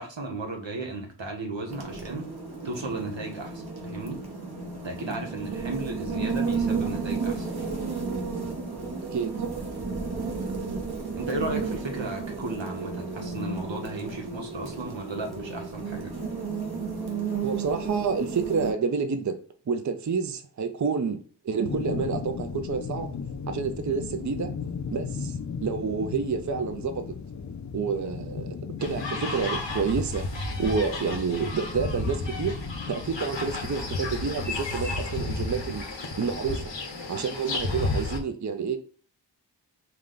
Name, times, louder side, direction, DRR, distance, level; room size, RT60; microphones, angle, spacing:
voice 1, 0.0-2.3 2.6-4.2 4.8-7.5 11.1-16.1, right 2 dB, 90° right, 1.1 m, -35 dB
sound 1, 1.7-18.7, right 4 dB, 60° right, 1.2 m, -33 dB
voice 2, 9.1-9.4 17.4-19.4 19.7-21.2 21.4-23.1 23.5-24.5 24.9-27.1 27.7-30.3 30.6-32.6 32.9-36.7 37.1-38.8, right 5 dB, 45° right, 0.5 m, -29 dB
sound 2, 21.6-34.5, left 6 dB, 40° left, 0.4 m, -37 dB
sound 3, 28.8-38.2, left 2 dB, 85° left, 1.0 m, -32 dB
4.8 x 2.2 x 3.8 m
wide cardioid pair, 50°, 44 cm